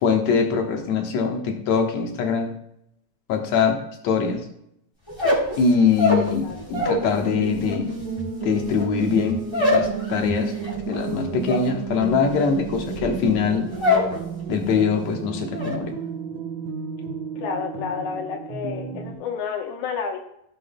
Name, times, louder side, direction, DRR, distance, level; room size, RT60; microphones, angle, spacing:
voice 1, 0.0-2.5 3.3-3.8 4.0-4.4 5.6-7.9 8.4-10.5 10.9-13.7 14.5-15.9, left 5 dB, 70° left, 3 dB, 2.4 m, -22 dB
sound 1, 5.1-7.1 7.4-14.2 14.5-15.0 15.3-15.8, left 2 dB, 10° left, 3.0 m, -25 dB
voice 2, 6.1-6.9 17.4-20.2, left 6 dB, 90° left, 2 dB, 2.5 m, -31 dB
sound 2, 6.9-19.1, right 6 dB, 75° right, 2.5 m, -32 dB
15.5 x 7.6 x 2.2 m, 0.75 s
omnidirectional pair, 3.3 m